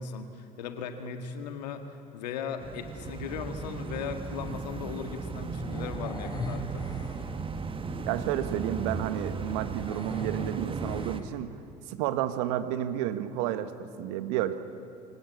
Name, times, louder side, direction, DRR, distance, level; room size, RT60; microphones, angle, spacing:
voice 1, 0.0-6.8, left 6 dB, 75° left, 7 dB, 1.9 m, -37 dB
sound 1, 2.6-11.2, right 4 dB, 25° right, 1.4 m, -36 dB
sound 2, 3.9-11.3, left 3 dB, 20° left, 3.9 m, -45 dB
voice 2, 8.1-11.5 11.9-14.5, right 11 dB, 70° right, 10 dB, 1.4 m, -31 dB
23.5 x 18.0 x 8.5 m, 2.6 s
hypercardioid pair, 70°, 21 cm